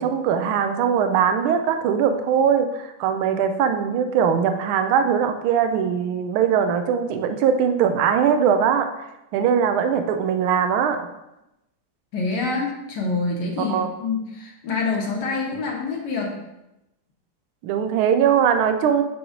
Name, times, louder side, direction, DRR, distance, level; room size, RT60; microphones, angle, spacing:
voice 1, 0.0-8.9 9.3-11.0 13.7-13.9 17.6-19.0, right 7 dB, 80° right, 7 dB, 1.4 m, -21 dB
voice 2, 12.1-16.4, left 3 dB, 55° left, -1 dB, 1.6 m, -26 dB
7.9 x 3.0 x 4.9 m, 0.92 s
omnidirectional pair, 2.4 m